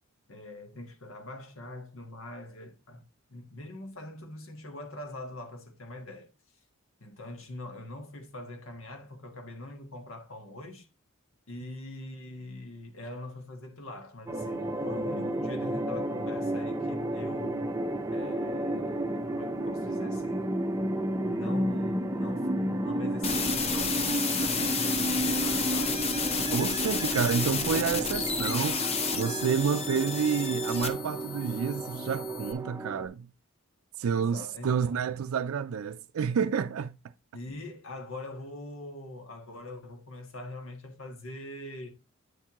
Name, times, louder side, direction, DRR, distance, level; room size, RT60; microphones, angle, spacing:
voice 1, 0.3-6.3 7.0-10.9 11.5-17.7 18.1-20.6 21.2-24.0 24.5-26.1 34.1-34.9 37.3-41.9, left 1 dB, 70° left, 1.5 m, -43 dB
sound 1, 14.3-33.1, right 1 dB, 15° right, 0.6 m, -32 dB
sound 2, 23.2-32.5, left 5 dB, 30° left, 0.7 m, -32 dB
voice 2, 26.5-28.8 29.1-33.3 34.0-37.0, right 6 dB, 85° right, 0.4 m, -29 dB
8.9 x 4.5 x 3.6 m
head